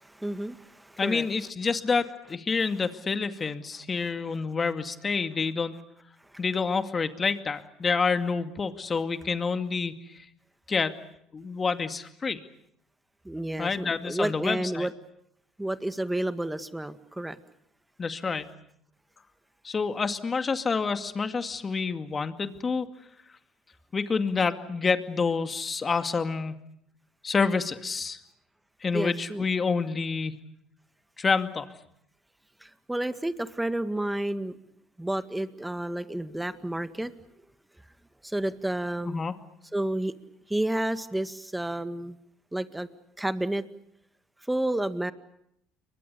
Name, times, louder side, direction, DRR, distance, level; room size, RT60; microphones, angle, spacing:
voice 1, 0.0-1.3 13.2-14.9 15.6-17.4 28.9-29.5 32.6-34.6 35.0-37.1 38.2-39.2 39.7-40.1 40.5-42.2 42.5-42.9 43.2-43.6 44.5-45.1, right 1 dB, 10° right, 11 dB, 1.9 m, -30 dB
voice 2, 1.0-5.7 6.4-10.3 10.7-10.9 11.3-12.4 13.6-14.9 18.0-18.5 19.6-22.9 23.9-26.6 27.2-28.2 28.8-30.3 31.2-31.7 39.1-39.4, left 5 dB, 30° left, 8 dB, 2.3 m, -28 dB
30.0 x 23.5 x 6.9 m, 0.75 s
hypercardioid pair, 70°, 0 cm